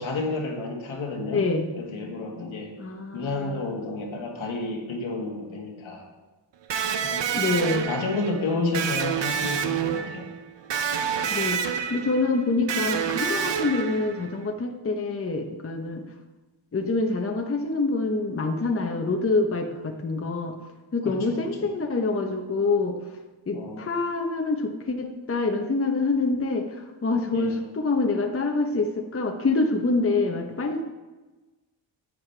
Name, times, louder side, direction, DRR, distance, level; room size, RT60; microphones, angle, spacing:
voice 1, 0.0-1.4 1.7-2.7 3.1-6.1 7.0-7.2 7.8-10.3 21.0-21.4 23.5-23.9 27.3-27.6, left 3 dB, 85° left, 1 dB, 1.8 m, -31 dB
voice 2, 1.3-1.7 2.8-3.7 7.3-7.9 11.2-16.0 16.7-20.6 20.9-23.0 23.5-30.8, left 3 dB, 30° left, 4 dB, 0.9 m, -26 dB
Electric guitar, 6.7-14.4, right 7 dB, 65° right, 0.7 m, -28 dB
11.0 x 7.8 x 3.3 m, 1.2 s
wide cardioid pair, 110°, 47 cm